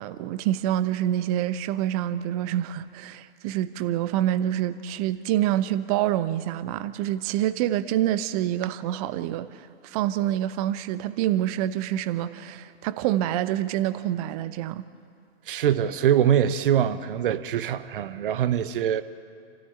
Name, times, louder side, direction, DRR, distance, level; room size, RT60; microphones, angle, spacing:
voice 1, 0.0-14.8, right 12 dB, 35° right, 13 dB, 1.0 m, -27 dB
voice 2, 15.5-19.0, right 10 dB, 50° right, 12 dB, 1.2 m, -23 dB
28.5 x 14.0 x 9.9 m, 2.2 s
figure-of-eight pair, 105°, 33 cm